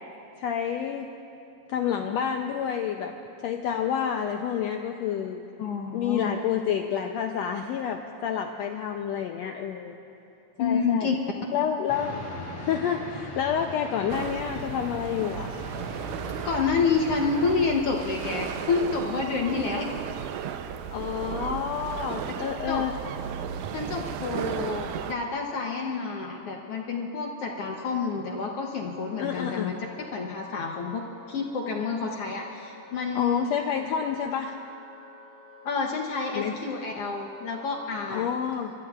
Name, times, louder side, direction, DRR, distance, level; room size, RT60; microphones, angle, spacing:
voice 1, 0.4-1.1 1.7-3.2 3.4-5.4 5.9-10.0 10.6-11.1 11.5-12.2 12.6-15.5 20.9-22.9 29.2-29.7 33.1-34.6 36.4-36.5 38.1-38.7, left 8 dB, 85° left, 4 dB, 1.5 m, -29 dB
voice 2, 5.6-6.4 10.6-11.1 16.4-19.9 22.7-22.9 23.7-29.7 30.1-33.5 35.6-38.3, left 4 dB, 70° left, 0 dB, 1.5 m, -29 dB
sound 1, 11.9-17.6, left 2 dB, 50° left, 3.5 m, -40 dB
sound 2, 14.1-25.1, right 9 dB, 90° right, 2.2 m, -35 dB
Wind instrument woodwind instrument, 27.7-38.0, left 2 dB, 30° left, 2.2 m, -50 dB
25.5 x 22.5 x 2.4 m, 2.8 s
omnidirectional pair, 3.6 m